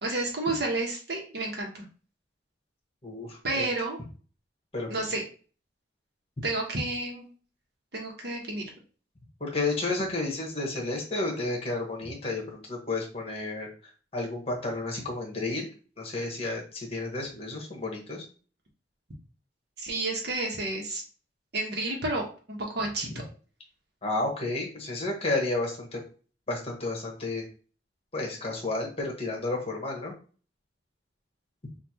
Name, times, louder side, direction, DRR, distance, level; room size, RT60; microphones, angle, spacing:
voice 1, 0.0-1.8 3.4-4.0 4.8-5.2 6.4-7.3 7.9-8.7 19.8-21.0 21.5-23.1, right 2 dB, 65° right, 0 dB, 1.2 m, -31 dB
voice 2, 3.0-3.6 4.7-4.9 9.4-13.7 14.1-15.7 16.0-18.2 23.1-23.2 24.0-26.0 26.5-27.4 28.1-30.1, left 2 dB, 35° left, 0 dB, 1.3 m, -31 dB
5.5 x 2.6 x 2.9 m, 0.39 s
head